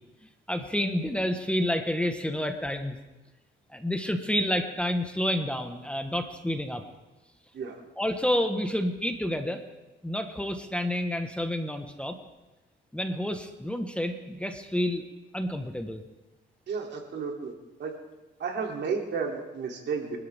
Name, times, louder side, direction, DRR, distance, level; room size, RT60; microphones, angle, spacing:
voice 1, 0.5-3.0 3.7-6.8 8.0-9.6 10.0-12.2 12.9-15.0 15.3-16.0, left 1 dB, 5° left, 6 dB, 1.4 m, -29 dB
voice 2, 16.7-17.5 17.8-17.9 18.4-20.2, right 5 dB, 60° right, 1 dB, 3.0 m, -32 dB
24.5 x 12.5 x 3.6 m, 1.1 s
cardioid pair, 90°, 20 cm